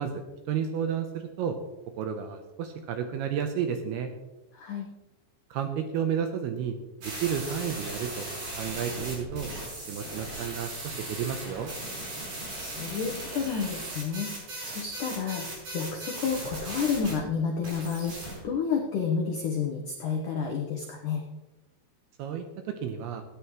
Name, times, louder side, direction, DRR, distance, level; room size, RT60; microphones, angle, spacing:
voice 1, 0.0-1.6 1.9-4.1 5.5-8.3 8.6-9.5 9.9-11.7 22.2-23.2, right 8 dB, 80° right, 6 dB, 2.4 m, -32 dB
voice 2, 4.5-4.9 12.6-21.2, left 6 dB, 85° left, 1 dB, 1.8 m, -30 dB
sound 1, 7.0-17.1 17.6-18.4, right 1 dB, 45° right, 6.1 m, -37 dB
18.0 x 9.8 x 3.1 m, 1.1 s
omnidirectional pair, 5.4 m